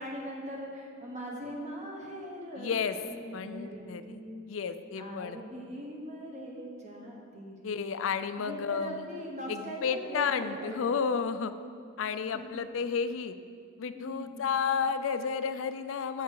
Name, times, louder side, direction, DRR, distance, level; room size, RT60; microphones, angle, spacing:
voice 1, 0.0-4.4 5.0-7.9 8.4-10.9 11.3-11.7 12.3-12.4 13.9-14.4, equal, 35° right, -1 dB, 1.1 m, -41 dB
voice 2, 2.6-3.0 3.3-4.2 4.5-5.4 7.6-9.1 9.5-11.5 12.0-13.3 13.8-16.2, left 6 dB, 65° left, 11 dB, 0.4 m, -32 dB
8.2 x 6.7 x 4.7 m, 2.2 s
head